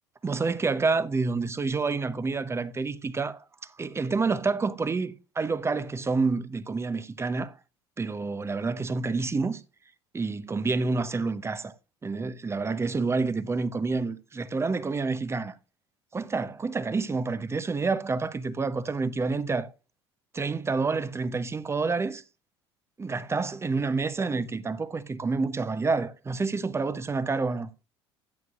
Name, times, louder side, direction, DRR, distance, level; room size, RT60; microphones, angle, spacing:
voice 1, 0.2-3.4 3.8-7.5 8.0-9.6 10.1-11.7 12.0-15.6 16.1-19.7 20.3-22.2 23.0-27.7, right 4 dB, 20° right, 0.7 m, -28 dB
10.5 x 9.1 x 2.4 m
hypercardioid pair, 65°, 13 cm